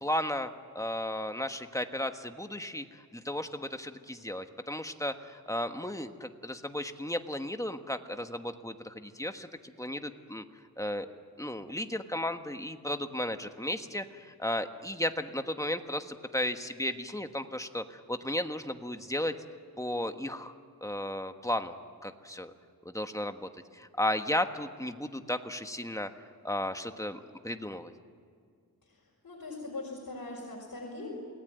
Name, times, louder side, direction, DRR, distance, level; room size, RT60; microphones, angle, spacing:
voice 1, 0.0-10.4 10.8-11.1 11.4-19.3 19.8-20.5 20.8-21.7 22.0-22.5 22.8-26.1 26.4-27.9, left 1 dB, 10° left, 7 dB, 1.3 m, -34 dB
voice 2, 28.9-31.1, left 2 dB, 60° left, -4 dB, 5.8 m, -41 dB
28.5 x 19.5 x 9.2 m, 2.2 s
wide cardioid pair, 95°, 35 cm